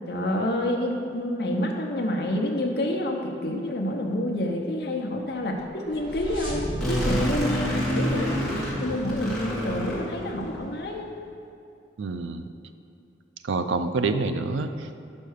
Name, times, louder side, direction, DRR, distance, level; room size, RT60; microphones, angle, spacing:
voice 1, 0.1-8.5 8.8-11.1, left 1 dB, 55° left, 1 dB, 0.8 m, -28 dB
sound 1, 5.5-9.1, equal, 30° right, 1.3 m, -34 dB
sound 2, 6.8-10.7, equal, ahead, 1.5 m, -28 dB
voice 2, 12.0-12.5 13.4-15.0, right 3 dB, 80° right, 9 dB, 0.4 m, -27 dB
5.5 x 5.3 x 6.4 m, 2.5 s
head